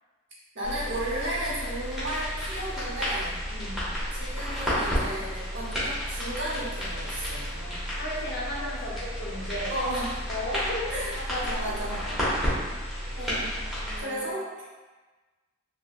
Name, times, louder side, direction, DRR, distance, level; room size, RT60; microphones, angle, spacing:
voice 1, 0.5-3.4 4.1-7.4 9.7-10.1 10.9-12.0 13.1-13.6 14.0-14.6, right 1 dB, 55° right, -6 dB, 0.8 m, -33 dB
sound 1, 0.6-14.0, equal, ahead, 0.8 m, -32 dB
voice 2, 3.5-3.9 7.5-9.7 10.3-12.6 13.0-13.3 13.8-14.3, left 1 dB, 45° left, -5 dB, 0.6 m, -37 dB
3.6 x 2.2 x 2.3 m, 1.3 s
head